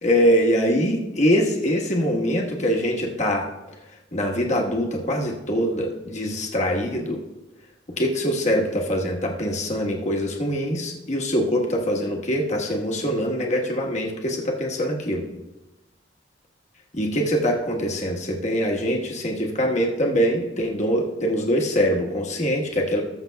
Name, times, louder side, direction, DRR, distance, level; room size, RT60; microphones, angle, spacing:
voice 1, 0.0-3.5 4.1-7.2 7.9-15.3 16.9-23.0, equal, 40° left, 0 dB, 1.3 m, -23 dB
20.5 x 6.9 x 2.3 m, 1.0 s
head